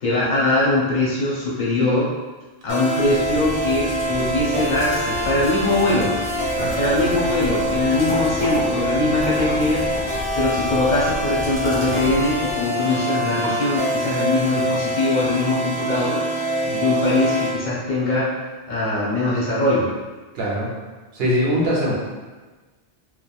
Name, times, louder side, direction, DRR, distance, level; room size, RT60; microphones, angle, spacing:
voice 1, 0.0-2.1 2.6-6.1 6.8-9.9 10.3-18.3 18.7-19.9, left 2 dB, 50° left, -7 dB, 0.7 m, -22 dB
sound 1, 2.7-17.5, equal, 25° right, 0.8 m, -25 dB
sound 2, 2.9-12.7, left 2 dB, 10° left, 1.2 m, -33 dB
sound 3, 13.4-13.6 14.1-14.2 14.7-14.8 15.5-15.6 15.8-16.0 16.3-16.6, right 2 dB, 55° right, 0.6 m, -38 dB
voice 2, 20.3-20.7 21.1-21.9, equal, 75° right, -4 dB, 0.9 m, -22 dB
2.9 x 2.1 x 2.3 m, 1.3 s
omnidirectional pair, 1.1 m